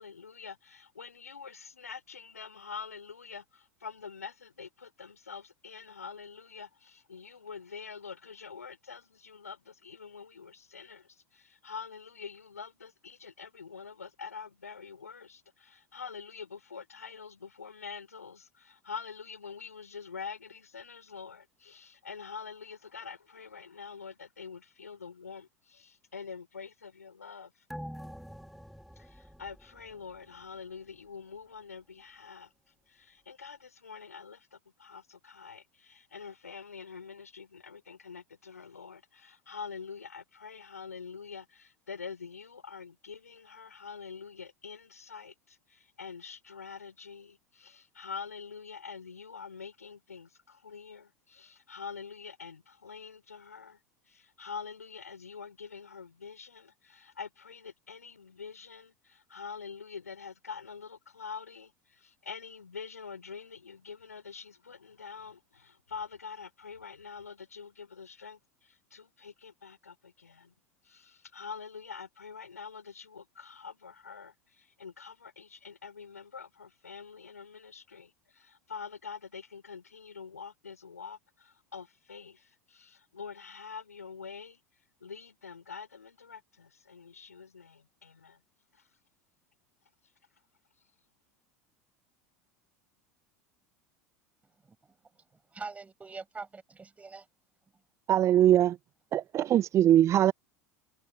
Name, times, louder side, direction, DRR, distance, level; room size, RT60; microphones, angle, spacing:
voice 1, 0.0-27.5 29.0-32.5 32.9-53.8 54.1-70.5 70.8-84.6 85.0-88.4 88.7-88.8, left 6 dB, 80° left, 5.9 m, -45 dB
sound 1, 27.7-30.6 30.9-31.0, equal, ahead, 1.8 m, -46 dB
voice 2, 95.5-97.3, right 4 dB, 15° right, 6.1 m, -43 dB
voice 3, 98.1-98.8 99.1-100.3, right 11 dB, 35° right, 0.7 m, -22 dB
figure-of-eight pair, 75°, 8 cm